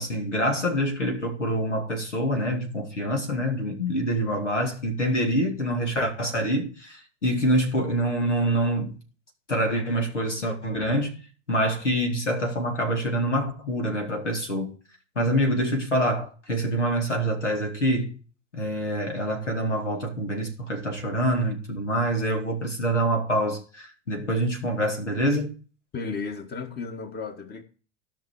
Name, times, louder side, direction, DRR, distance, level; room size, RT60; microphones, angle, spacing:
voice 1, 0.0-9.0 9.5-11.2 11.5-14.7 15.2-18.2 18.5-25.5, equal, 85° left, 2.6 m, -26 dB
voice 2, 25.9-27.6, left 4 dB, 30° left, 1.9 m, -34 dB
14.5 x 6.0 x 4.9 m
figure-of-eight pair, 90°, 35 cm